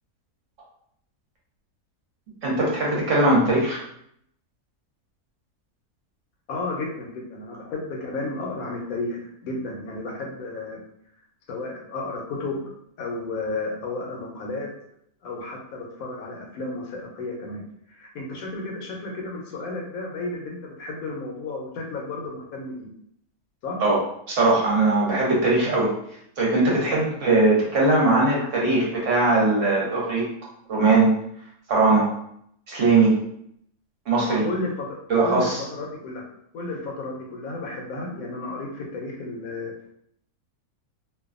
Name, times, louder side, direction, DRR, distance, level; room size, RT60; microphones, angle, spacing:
voice 1, 2.4-3.8 23.8-23.9 24.3-25.9 26.4-30.2 30.7-31.1 31.7-32.1 32.7-33.2 34.1-34.4 35.1-35.6, right 2 dB, 60° right, -4 dB, 1.0 m, -20 dB
voice 2, 6.5-10.8 11.5-12.6 13.0-14.7 15.2-17.6 17.9-22.9 23.6-23.8 34.4-34.9 35.2-36.3 36.5-39.7, left 2 dB, 75° left, -1 dB, 1.0 m, -32 dB
2.6 x 2.2 x 2.4 m, 0.72 s
omnidirectional pair, 1.6 m